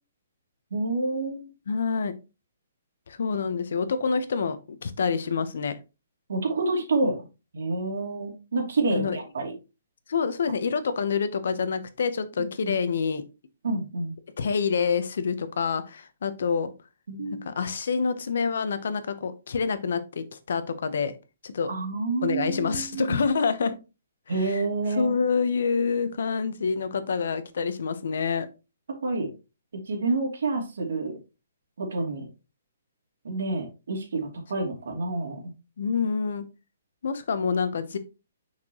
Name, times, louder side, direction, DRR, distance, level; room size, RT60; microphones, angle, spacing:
voice 1, 0.7-1.5 6.3-7.2 7.5-9.5 12.4-12.8 13.6-14.1 17.1-17.5 21.7-23.2 24.3-25.2 29.0-29.3 29.9-31.2 31.8-32.3 33.2-35.5, right 3 dB, 75° right, 2.7 m, -28 dB
voice 2, 1.7-2.1 3.1-4.6 4.8-5.8 8.9-9.2 10.1-13.2 14.4-16.7 17.3-21.1 21.4-21.7 22.2-23.7 24.4-24.6 25.0-28.5 35.8-36.5 37.0-38.0, left 5 dB, 65° left, 0.9 m, -27 dB
6.2 x 5.9 x 3.0 m
hypercardioid pair, 170°, 0 cm